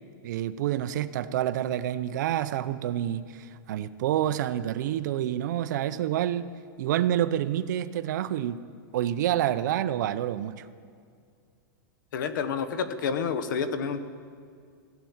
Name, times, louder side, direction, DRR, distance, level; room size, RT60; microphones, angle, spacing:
voice 1, 0.2-6.5 6.8-8.6 8.9-10.6, right 11 dB, 60° right, 14 dB, 0.6 m, -28 dB
voice 2, 12.1-14.0, left 6 dB, 70° left, 11 dB, 1.0 m, -29 dB
15.5 x 8.9 x 7.2 m, 2.2 s
supercardioid pair, 165°, 11 cm